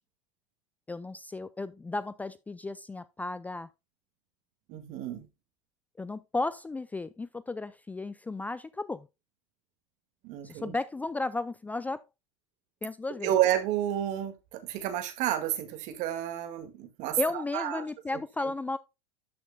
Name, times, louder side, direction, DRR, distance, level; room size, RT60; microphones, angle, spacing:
voice 1, 0.9-3.7 6.0-9.1 10.4-12.0 12.8-13.3 17.2-18.8, left 3 dB, 10° left, 0.4 m, -34 dB
voice 2, 4.7-5.3 10.2-10.8 13.2-17.8, right 12 dB, 55° right, 1.9 m, -30 dB
12.5 x 5.9 x 2.2 m
hypercardioid pair, 90°, 15 cm